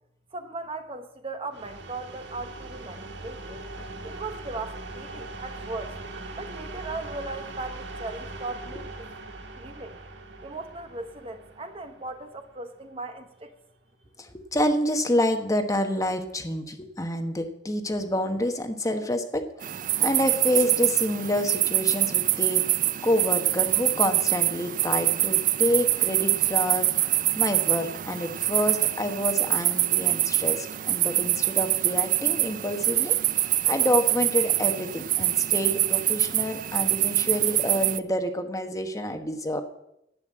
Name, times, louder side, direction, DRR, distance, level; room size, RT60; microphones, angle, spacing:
voice 1, 0.3-3.6 4.0-5.9 6.4-8.9 9.6-10.0 10.4-13.5, right 3 dB, 30° right, 7 dB, 0.9 m, -38 dB
sound 1, 1.5-13.1, right 2 dB, 80° right, 1.5 m, -41 dB
voice 2, 14.2-39.6, left 1 dB, 20° left, 6 dB, 1.1 m, -28 dB
sound 2, 19.6-38.0, right 14 dB, 45° right, 0.4 m, -25 dB
11.0 x 8.7 x 7.5 m, 0.82 s
head